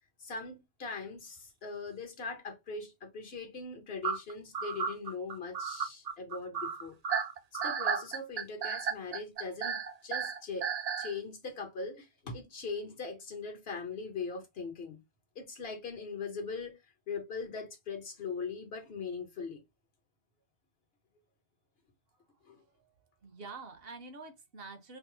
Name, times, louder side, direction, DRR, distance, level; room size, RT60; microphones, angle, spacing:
voice 1, 0.2-7.0 7.5-10.7 11.0-15.0 15.3-19.6 22.4-22.6, left 4 dB, 70° left, 1.4 m, -40 dB
sound 1, 4.0-11.1, right 7 dB, 50° right, 0.5 m, -33 dB
voice 2, 22.5-22.9 23.2-25.0, right 4 dB, 65° right, 1.0 m, -47 dB
3.5 x 2.0 x 3.8 m
omnidirectional pair, 1.1 m